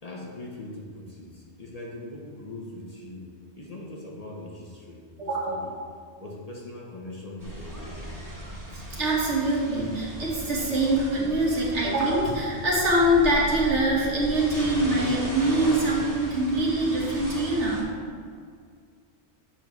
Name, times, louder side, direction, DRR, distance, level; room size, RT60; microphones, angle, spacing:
voice 1, 0.0-5.7 6.2-8.0 15.5-15.6, left 2 dB, 40° left, -2 dB, 0.8 m, -41 dB
voice 2, 5.2-5.7 8.7-17.9, right 1 dB, 80° right, -4 dB, 1.6 m, -24 dB
sound 1, 7.4-17.8, equal, 20° right, 1.0 m, -37 dB
7.3 x 3.0 x 5.3 m, 2.1 s
omnidirectional pair, 1.2 m